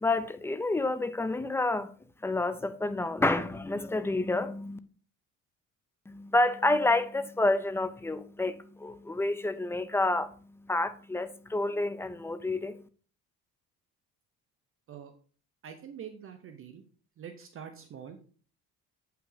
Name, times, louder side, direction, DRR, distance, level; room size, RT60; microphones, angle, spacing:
voice 1, 0.0-1.9 2.2-4.8 6.1-10.3 10.7-12.8, left 2 dB, 10° left, 0.4 m, -29 dB
voice 2, 15.6-16.8 17.2-18.2, right 8 dB, 40° right, 0.8 m, -45 dB
7.4 x 5.7 x 3.9 m
cardioid pair, 140°, 32 cm